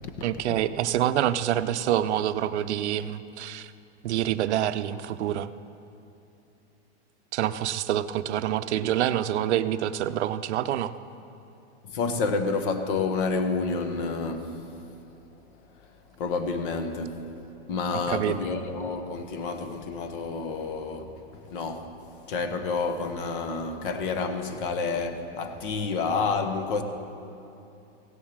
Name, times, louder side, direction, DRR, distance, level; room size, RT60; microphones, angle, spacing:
voice 1, 0.2-3.7 4.0-5.5 7.3-10.9 18.1-18.4, right 11 dB, 75° right, 0.6 m, -26 dB
voice 2, 11.9-14.6 16.2-17.3 17.7-21.1 21.5-21.9 22.3-26.8, left 4 dB, 50° left, 1.1 m, -29 dB
16.0 x 7.3 x 6.3 m
supercardioid pair, 155°, 34 cm